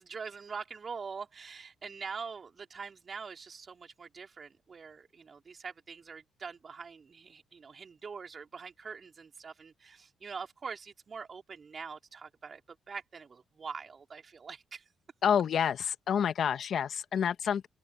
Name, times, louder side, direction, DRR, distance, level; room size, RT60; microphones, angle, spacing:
voice 1, 0.0-14.8, right 5 dB, 40° right, 4.7 m, -44 dB
voice 2, 15.2-17.7, left 8 dB, 60° left, 1.5 m, -28 dB
cardioid pair, 90°, 0 cm